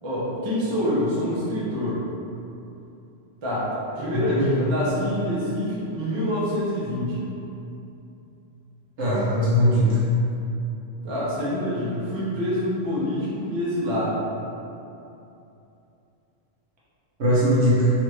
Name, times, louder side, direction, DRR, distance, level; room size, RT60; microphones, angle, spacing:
voice 1, 0.0-2.1 3.4-7.2 11.0-14.2, equal, 30° right, -8 dB, 0.6 m, -26 dB
voice 2, 4.1-4.5 9.0-10.0 17.2-17.9, equal, 70° right, -9 dB, 1.3 m, -20 dB
3.5 x 2.5 x 3.1 m, 2.8 s
omnidirectional pair, 1.2 m